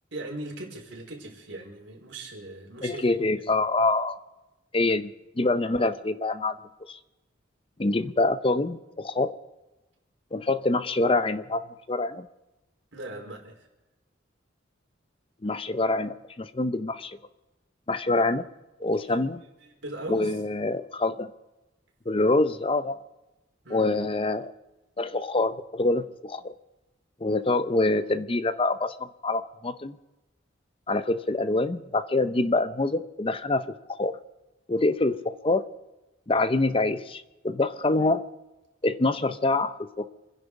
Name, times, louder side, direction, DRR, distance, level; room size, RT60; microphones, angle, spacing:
voice 1, 0.1-3.2 12.9-13.7 19.6-20.4 23.6-24.0, right 1 dB, 70° right, 0 dB, 4.5 m, -39 dB
voice 2, 2.8-4.2 4.7-5.1 5.4-6.6 6.9-7.0 7.8-9.3 10.3-11.6 11.9-12.3 15.4-17.2 17.9-18.5 18.8-19.4 20.1-21.3 22.1-23.0 23.7-24.5 25.0-26.5 27.2-30.0 30.9-34.2 34.7-35.7 36.3-38.2 38.8-40.1, left 2 dB, 30° left, 12 dB, 0.6 m, -25 dB
27.5 x 10.5 x 4.8 m, 1.0 s
head